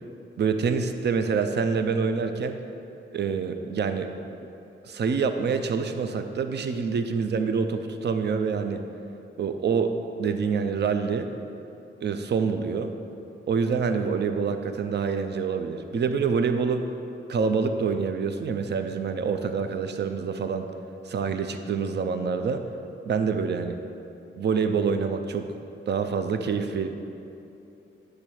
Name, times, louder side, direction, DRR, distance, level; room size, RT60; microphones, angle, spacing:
voice 1, 0.4-2.6 3.1-4.1 4.8-8.9 9.4-9.9 10.2-11.3 12.0-12.9 13.5-16.9 17.3-20.7 21.1-22.7 23.1-23.8 24.4-25.5 25.9-26.9, right 5 dB, 60° right, 7 dB, 0.4 m, -26 dB
8.3 x 3.3 x 6.1 m, 2.8 s
wide cardioid pair, 145°, 20 cm